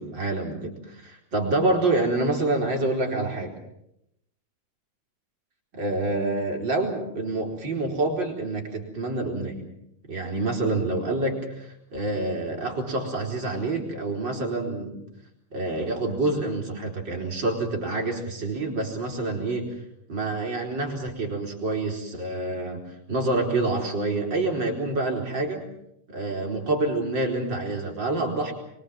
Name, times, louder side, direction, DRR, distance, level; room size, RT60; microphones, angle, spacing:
voice 1, 0.0-3.6 5.7-9.6 10.1-15.0 15.5-19.8 20.1-25.6 26.1-28.5, right 2 dB, 35° right, 1 dB, 4.8 m, -27 dB
24.5 x 23.5 x 7.5 m, 0.80 s
omnidirectional pair, 3.7 m